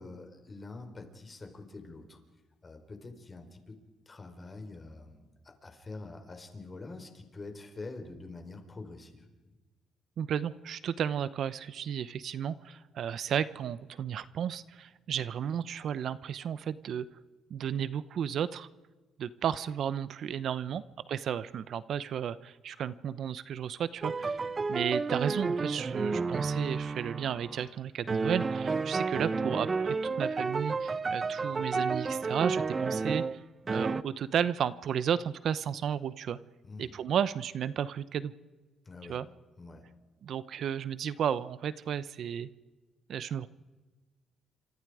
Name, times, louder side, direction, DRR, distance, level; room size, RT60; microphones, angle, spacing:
voice 1, 0.0-2.2 2.6-3.8 4.1-9.3 36.6-36.9 38.9-39.2 39.6-39.9, left 3 dB, 30° left, 5 dB, 4.4 m, -45 dB
voice 2, 10.2-17.1 17.5-18.7 19.2-24.4 24.7-33.2 33.7-36.4 36.8-38.3 39.1-39.3 40.2-42.5 43.1-43.5, right 8 dB, 65° right, 16 dB, 0.8 m, -33 dB
sound 1, 24.0-27.7 28.1-33.4 33.7-34.0, right 4 dB, 30° right, 0.8 m, -31 dB
28.5 x 26.0 x 4.9 m, 1.2 s
cardioid pair, 90°, 0 cm